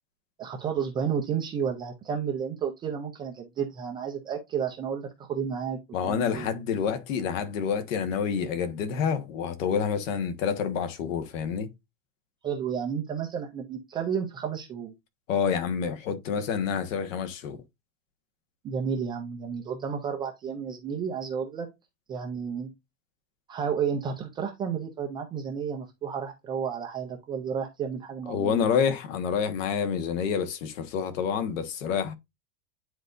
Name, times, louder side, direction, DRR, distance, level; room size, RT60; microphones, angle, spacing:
voice 1, 0.4-6.5 12.4-14.9 18.6-21.7 22.1-22.7 23.5-28.6, right 7 dB, 10° right, 0.4 m, -32 dB
voice 2, 5.9-11.7 15.3-17.6 28.3-32.1, left 7 dB, 65° left, 1.4 m, -28 dB
9.5 x 4.0 x 2.5 m
supercardioid pair, 165°, 42 cm